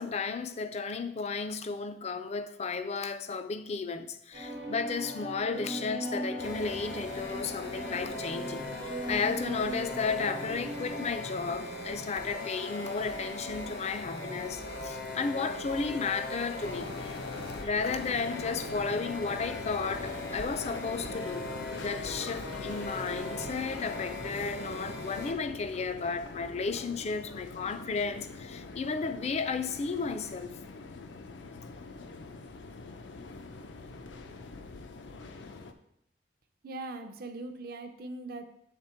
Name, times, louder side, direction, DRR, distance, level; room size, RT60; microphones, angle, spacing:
voice 1, 0.0-8.7 9.1-16.9 17.6-21.5 21.8-30.5, left 4 dB, 40° left, 0.4 m, -33 dB
sound 1, 4.3-11.1, right 1 dB, 80° right, 1.0 m, -39 dB
sound 2, 6.4-25.3, left 2 dB, 70° left, 0.9 m, -39 dB
sound 3, 16.6-35.7, left 3 dB, 85° left, 0.5 m, -43 dB
voice 2, 36.6-38.5, right 2 dB, 55° right, 0.5 m, -40 dB
7.5 x 3.6 x 4.3 m
head